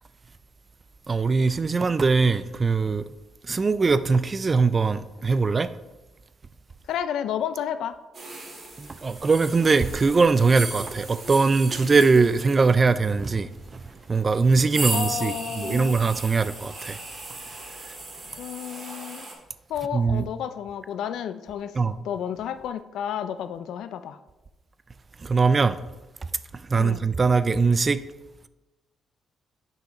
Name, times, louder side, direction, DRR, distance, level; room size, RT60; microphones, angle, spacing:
voice 1, 1.1-3.0 3.5-5.7 8.8-13.5 14.1-17.0 19.9-20.2 21.8-21.9 25.2-25.8 26.7-28.0, right 4 dB, 30° right, 0.3 m, -21 dB
voice 2, 6.9-8.0 14.9-15.9 18.4-19.3 19.7-24.2 26.8-27.1, left 9 dB, 80° left, 0.4 m, -31 dB
sound 1, 8.1-19.3, right 2 dB, 50° right, 1.7 m, -37 dB
7.6 x 5.7 x 3.0 m
cardioid pair, 90°, 0 cm